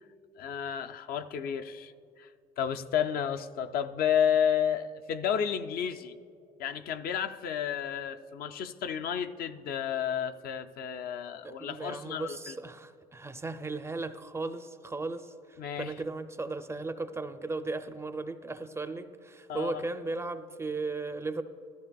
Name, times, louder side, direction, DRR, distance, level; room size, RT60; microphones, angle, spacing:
voice 1, 0.4-1.9 2.2-2.3 2.6-6.1 6.6-12.5 15.6-15.9 19.5-19.8, left 8 dB, 65° left, 7 dB, 0.5 m, -31 dB
voice 2, 11.4-21.4, right 3 dB, 15° right, 9 dB, 0.4 m, -36 dB
13.5 x 13.5 x 2.3 m, 2.5 s
cardioid pair, 110°, 17 cm